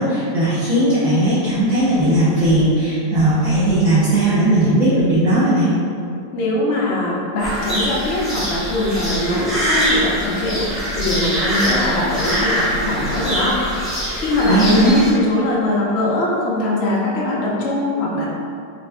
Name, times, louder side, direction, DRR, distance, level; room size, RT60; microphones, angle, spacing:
voice 1, 0.0-5.7 14.5-15.0, right 1 dB, 50° right, -11 dB, 1.2 m, -17 dB
voice 2, 6.3-13.6 14.2-18.2, left 1 dB, 70° left, -5 dB, 0.6 m, -21 dB
sound 1, 7.4-15.1, equal, ahead, 0.4 m, -23 dB
3.2 x 2.9 x 3.5 m, 2.5 s
omnidirectional pair, 2.0 m